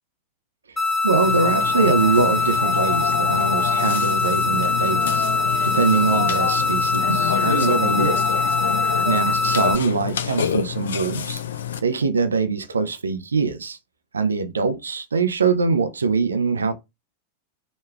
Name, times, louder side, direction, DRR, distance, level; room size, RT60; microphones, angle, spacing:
voice 1, 0.7-5.3 5.6-8.4 9.1-11.4 11.8-13.8 14.1-16.7, right 4 dB, 75° right, 0.5 m, -23 dB
sound 1, 0.8-9.8, left 3 dB, 15° left, 1.4 m, -22 dB
Burping eructation, 1.2-11.8, left 9 dB, 65° left, 0.5 m, -27 dB
5.0 x 3.2 x 2.3 m
figure-of-eight pair, 90°, 0 cm